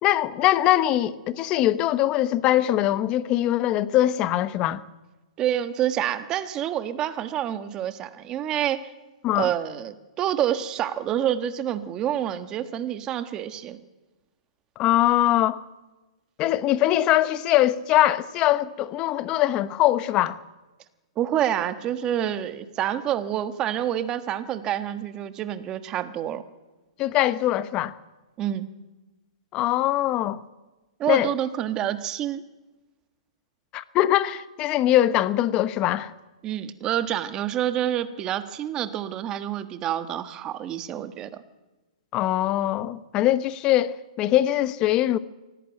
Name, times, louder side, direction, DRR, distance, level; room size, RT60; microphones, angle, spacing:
voice 1, 0.0-4.8 9.2-9.5 14.8-15.6 16.4-20.4 27.0-27.9 29.5-30.4 31.1-31.3 33.7-36.1 42.1-45.2, left 13 dB, 25° left, 0.9 m, -22 dB
voice 2, 5.4-8.9 9.3-13.8 21.2-26.4 28.4-28.7 31.0-32.4 36.4-41.4, right 11 dB, 20° right, 1.3 m, -27 dB
24.0 x 17.0 x 9.1 m
hypercardioid pair, 155°, 3 cm